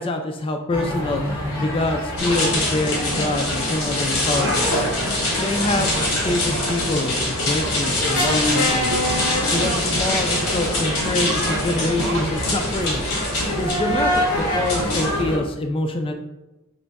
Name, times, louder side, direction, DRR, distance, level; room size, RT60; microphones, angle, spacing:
voice 1, 0.0-5.1 5.4-9.1 9.5-13.0 13.5-16.1, left 2 dB, 25° left, 5 dB, 0.3 m, -25 dB
sound 1, 0.7-15.4, equal, 90° left, 1.3 m, -26 dB
sound 2, 2.2-15.2, left 2 dB, 70° left, 1.1 m, -25 dB
Singing, 4.2-5.4 5.6-9.3 9.6-12.8, right 3 dB, 55° right, 0.4 m, -33 dB
5.1 x 2.1 x 3.4 m, 0.98 s
head